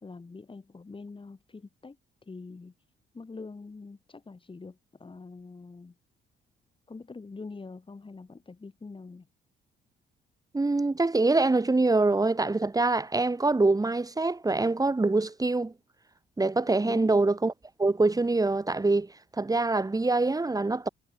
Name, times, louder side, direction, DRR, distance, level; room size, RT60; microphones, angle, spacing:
voice 1, 0.0-2.0 2.2-2.7 3.1-5.9 6.9-9.3 16.8-17.1, left 4 dB, 25° left, 4.7 m, -44 dB
voice 2, 10.5-15.7 16.4-17.5 17.8-20.9, right 3 dB, 20° right, 2.7 m, -25 dB
cardioid pair, 90°, 20 cm